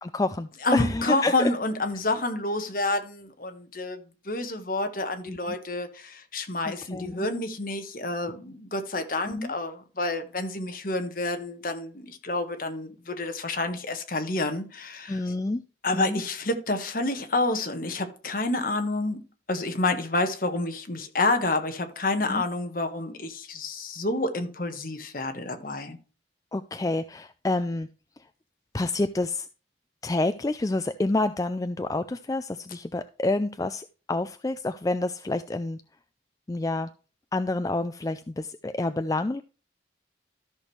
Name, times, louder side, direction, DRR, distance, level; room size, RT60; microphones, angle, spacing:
voice 1, 0.0-1.5 5.3-5.4 6.9-7.3 9.3-9.5 15.1-15.6 15.9-16.2 22.3-22.4 26.5-27.9 28.7-29.5 30.0-35.8 36.5-36.9 37.3-39.4, left 2 dB, 20° left, 0.3 m, -28 dB
voice 2, 0.6-4.0 4.2-15.3 15.8-26.0, left 2 dB, 45° left, 1.4 m, -29 dB
13.5 x 6.2 x 3.3 m
head